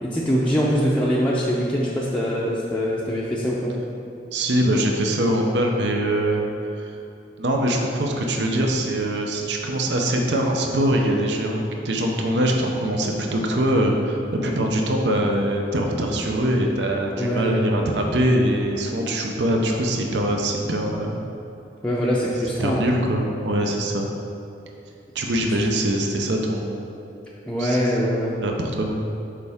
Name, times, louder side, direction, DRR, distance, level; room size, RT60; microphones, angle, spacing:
voice 1, 0.0-3.7 17.2-17.5 21.8-22.9 27.5-28.3, equal, 5° left, -7 dB, 0.5 m, -23 dB
voice 2, 4.3-6.5 6.8-6.9 7.4-21.2 22.6-24.1 25.1-27.0 27.6-27.8 28.4-28.9, right 1 dB, 70° right, 2 dB, 0.6 m, -23 dB
6.6 x 4.7 x 3.5 m, 2.8 s
head